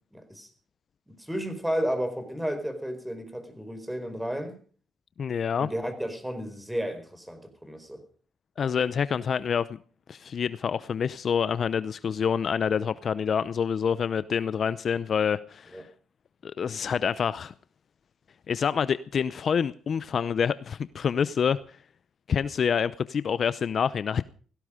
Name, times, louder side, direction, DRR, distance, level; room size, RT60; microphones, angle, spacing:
voice 1, 0.1-0.5 1.1-4.6 5.6-8.0 15.7-15.8, equal, 5° right, 4.5 m, -32 dB
voice 2, 5.2-5.7 8.6-9.8 10.1-15.9 16.4-17.5 18.5-21.6 22.3-24.2, left 7 dB, 50° left, 0.7 m, -27 dB
17.5 x 16.0 x 5.1 m
cardioid pair, 90°, 0 cm